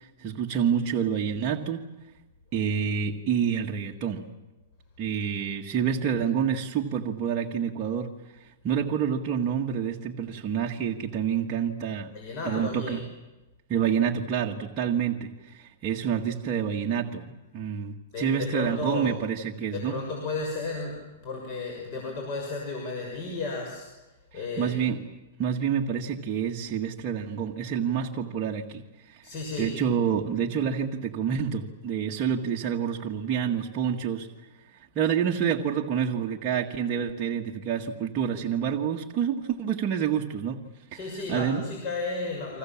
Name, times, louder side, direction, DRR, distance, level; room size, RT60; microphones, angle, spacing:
voice 1, 0.0-1.9 2.5-4.3 5.0-8.1 8.6-12.1 12.5-13.0 13.7-20.0 24.3-25.0 25.4-29.2 29.6-34.3 35.0-40.6 40.9-41.0 41.3-41.6, right 8 dB, 25° right, -1 dB, 1.8 m, -28 dB
voice 2, 12.1-13.0 18.1-19.2 19.7-23.9 24.3-24.8 29.2-29.8 40.9-42.6, left 3 dB, 35° left, 0 dB, 6.4 m, -33 dB
30.0 x 25.0 x 7.4 m, 1.1 s
supercardioid pair, 160°, 0 cm